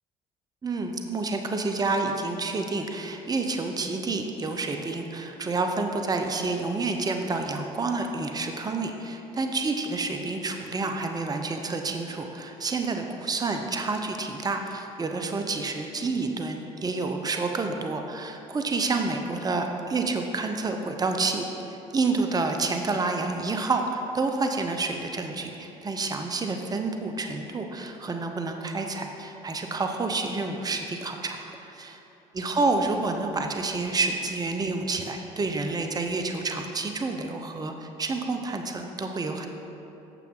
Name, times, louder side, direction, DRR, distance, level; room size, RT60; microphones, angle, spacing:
voice 1, 0.6-32.0 32.3-39.5, right 3 dB, 25° right, 4 dB, 0.7 m, -29 dB
9.1 x 6.9 x 3.8 m, 2.9 s
hypercardioid pair, 65°, 16 cm